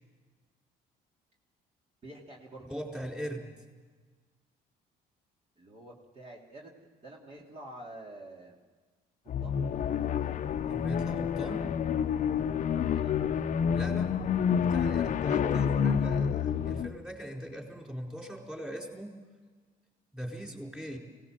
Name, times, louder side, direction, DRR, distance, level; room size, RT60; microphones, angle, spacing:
voice 1, 2.0-2.6 5.6-6.7 7.0-8.6 9.4-9.5 12.8-13.1, right 1 dB, 35° right, -2 dB, 3.2 m, -47 dB
voice 2, 2.7-3.5 10.7-11.7 13.7-14.2 14.6-19.1 20.1-21.0, equal, 5° right, 0 dB, 4.5 m, -40 dB
sound 1, 9.3-16.9, left 7 dB, 45° left, 0.9 m, -28 dB
24.5 x 18.0 x 7.6 m, 1.5 s
cardioid pair, 110°, 17 cm